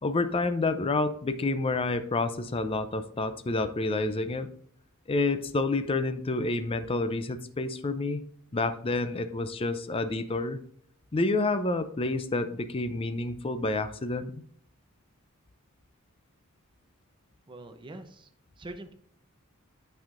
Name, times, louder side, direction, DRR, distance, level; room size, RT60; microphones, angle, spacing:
voice 1, 0.0-4.5 5.1-8.2 8.5-10.6 11.1-14.4, left 2 dB, 25° left, 10 dB, 0.5 m, -29 dB
voice 2, 17.5-18.3 18.6-18.9, right 2 dB, 25° right, 8 dB, 0.6 m, -43 dB
8.9 x 5.6 x 2.5 m, 0.64 s
head